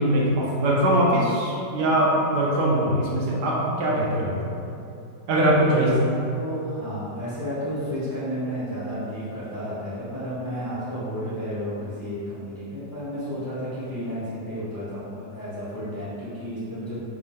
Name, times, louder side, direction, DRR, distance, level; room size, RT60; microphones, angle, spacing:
voice 1, 0.0-4.5 5.3-5.9, right 1 dB, 75° right, -3 dB, 1.1 m, -22 dB
voice 2, 5.7-17.0, equal, 20° left, -12 dB, 0.7 m, -32 dB
3.4 x 2.6 x 3.6 m, 2.6 s
omnidirectional pair, 1.9 m